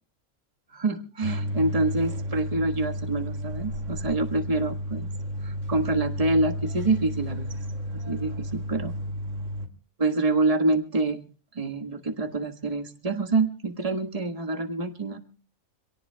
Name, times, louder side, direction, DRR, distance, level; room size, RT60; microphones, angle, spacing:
voice 1, 0.7-5.1 5.4-7.5 7.9-8.9 10.0-11.2 11.5-15.2, right 2 dB, 30° right, 4 dB, 1.5 m, -26 dB
sound 1, 1.2-9.7, equal, 65° right, 2.3 m, -32 dB
26.0 x 18.5 x 2.3 m, 0.38 s
omnidirectional pair, 1.4 m